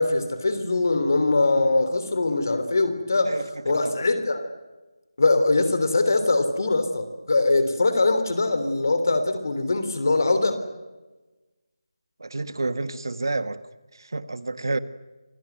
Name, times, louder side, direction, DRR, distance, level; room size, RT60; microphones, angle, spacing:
voice 1, 0.0-3.4 3.6-4.4 5.2-10.6, left 2 dB, 45° left, 3.2 m, -22 dB
voice 2, 3.2-4.0 12.2-13.6 13.9-14.8, right 2 dB, 55° right, 1.4 m, -30 dB
27.0 x 18.5 x 9.2 m
figure-of-eight pair, 180°, 2 cm